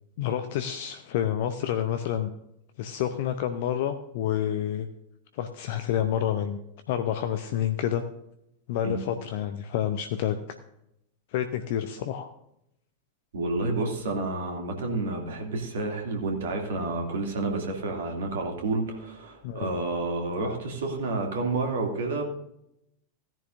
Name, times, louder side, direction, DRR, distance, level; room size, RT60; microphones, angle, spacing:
voice 1, 0.2-2.3 2.8-4.9 5.3-6.6 6.9-8.0 8.7-10.4 11.3-12.3 19.4-19.7, left 10 dB, 50° left, 8 dB, 0.7 m, -28 dB
voice 2, 13.3-22.3, right 2 dB, 60° right, 2 dB, 2.7 m, -30 dB
16.5 x 10.5 x 2.6 m, 0.79 s
figure-of-eight pair, 90°, 0 cm